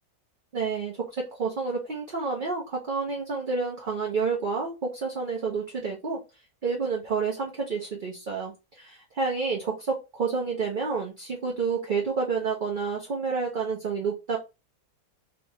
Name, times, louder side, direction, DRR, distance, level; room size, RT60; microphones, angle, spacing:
voice 1, 0.5-6.2 6.6-14.4, right 4 dB, 45° right, -1 dB, 0.7 m, -29 dB
3.4 x 3.0 x 3.0 m, 0.26 s
omnidirectional pair, 1.8 m